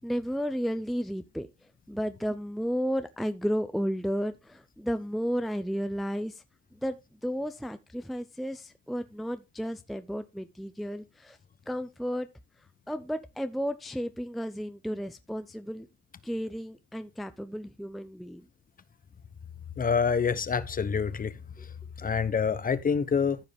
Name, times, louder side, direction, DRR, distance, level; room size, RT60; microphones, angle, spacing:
voice 1, 0.0-1.5 1.9-6.3 6.8-6.9 7.2-11.4 11.7-12.3 12.9-15.9 16.2-18.4, equal, ahead, 0.5 m, -33 dB
voice 2, 19.8-21.3 22.0-23.4, left 6 dB, 30° left, 0.9 m, -26 dB
14.0 x 4.9 x 3.5 m
cardioid pair, 105°, 29 cm